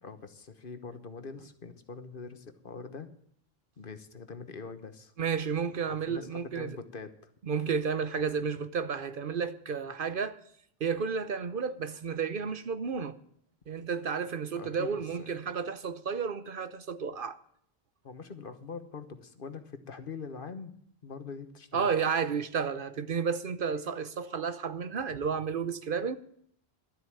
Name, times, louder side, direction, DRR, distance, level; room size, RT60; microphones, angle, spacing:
voice 1, 0.0-3.1 3.8-5.1 5.9-7.3 14.5-14.9 15.2-15.4 18.0-20.7 21.0-21.9, left 5 dB, 55° left, 1.3 m, -43 dB
voice 2, 5.2-6.8 7.5-10.4 10.8-13.2 13.7-17.4 21.7-26.2, right 6 dB, 60° right, 1.0 m, -32 dB
12.5 x 8.0 x 8.7 m
omnidirectional pair, 1.1 m